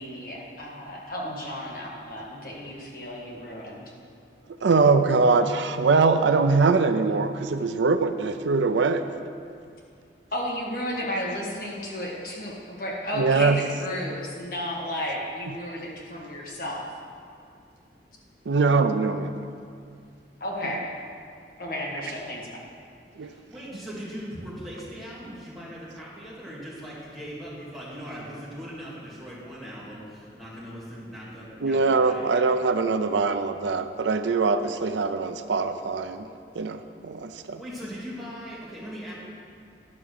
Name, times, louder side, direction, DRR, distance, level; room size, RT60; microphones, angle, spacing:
voice 1, 0.0-3.9 10.3-16.8 20.4-20.9 21.6-22.5, left 1 dB, 50° left, -3 dB, 1.7 m, -33 dB
voice 2, 4.6-9.0 13.1-13.6 15.8-15.9 18.5-19.4 20.6-20.8 23.2-23.3 31.6-36.3 36.5-37.6, right 4 dB, 85° right, 9 dB, 0.5 m, -22 dB
voice 3, 23.2-32.5 37.6-39.1, equal, ahead, -9 dB, 2.6 m, -39 dB
11.0 x 5.9 x 6.5 m, 2.3 s
head